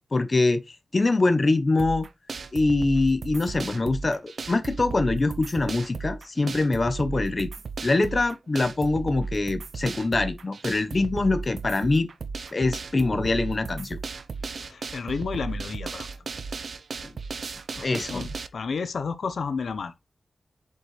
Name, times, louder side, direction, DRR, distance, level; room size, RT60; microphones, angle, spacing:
voice 1, 0.1-2.1 2.5-7.5 7.8-12.1 12.5-14.0 17.8-18.3, left 3 dB, 35° left, 1.0 m, -24 dB
sound 1, 1.8-18.5, right 4 dB, 70° right, 0.8 m, -35 dB
voice 2, 14.6-16.1 17.7-19.9, left 5 dB, 80° left, 0.8 m, -32 dB
7.6 x 5.5 x 3.2 m
wide cardioid pair, 120°, 0 cm